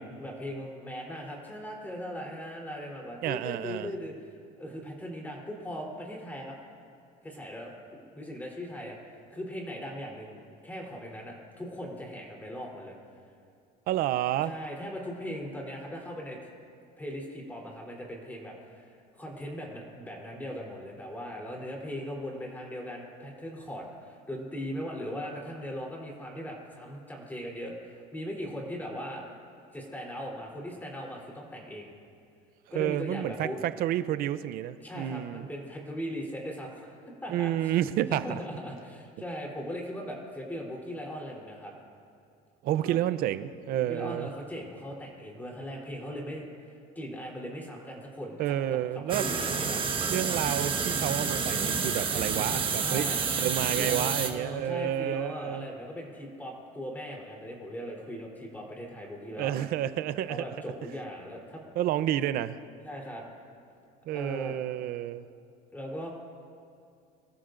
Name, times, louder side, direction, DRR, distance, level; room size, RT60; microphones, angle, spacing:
voice 1, 0.2-6.6 7.2-10.4 10.6-13.0 14.4-16.4 17.0-29.2 29.7-31.9 32.7-33.6 34.8-37.7 38.1-41.7 42.8-43.0 43.8-49.8 52.8-53.3 53.7-59.7 60.3-61.6 62.8-63.2 64.1-64.6 65.7-66.1, equal, 10° left, -2 dB, 3.5 m, -39 dB
voice 2, 3.2-3.9 13.9-14.5 32.7-35.5 37.3-38.4 42.6-44.3 48.4-49.2 49.5-49.8 50.1-53.1 53.4-55.7 59.4-60.4 61.8-62.6 64.1-65.3, right 12 dB, 60° right, 13 dB, 0.6 m, -30 dB
sound 1, 49.1-54.3, right 5 dB, 30° right, 1.4 m, -29 dB
25.0 x 14.0 x 2.6 m, 2.4 s
cardioid pair, 125°, 17 cm